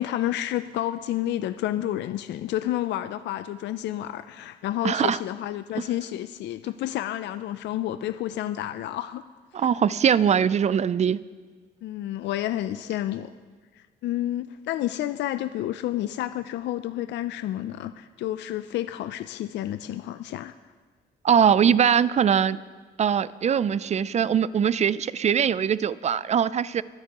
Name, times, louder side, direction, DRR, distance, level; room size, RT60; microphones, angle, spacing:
voice 1, 0.0-9.3 9.6-9.7 11.8-13.3 13.7-20.5, left 13 dB, 75° left, 12 dB, 0.4 m, -30 dB
voice 2, 4.8-5.2 9.5-11.2 21.2-22.6 23.0-26.8, right 8 dB, 40° right, 18 dB, 0.4 m, -21 dB
22.0 x 9.4 x 2.9 m, 1.5 s
cardioid pair, 90°, 18 cm